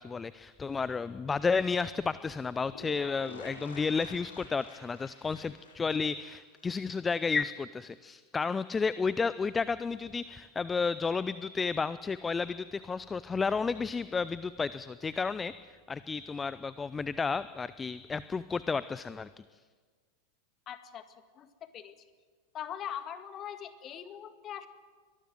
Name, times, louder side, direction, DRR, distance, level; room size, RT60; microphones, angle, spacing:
voice 1, 0.0-19.3, left 5 dB, 15° left, 16 dB, 0.5 m, -32 dB
sound 1, 2.7-7.3 7.6-7.7 7.9-8.0, left 3 dB, 65° left, 5.4 m, -50 dB
voice 2, 20.7-21.0 21.4-21.9 22.5-24.7, left 9 dB, 30° left, 10 dB, 1.9 m, -41 dB
23.0 x 19.5 x 7.8 m, 1.5 s
figure-of-eight pair, 90°, 0 cm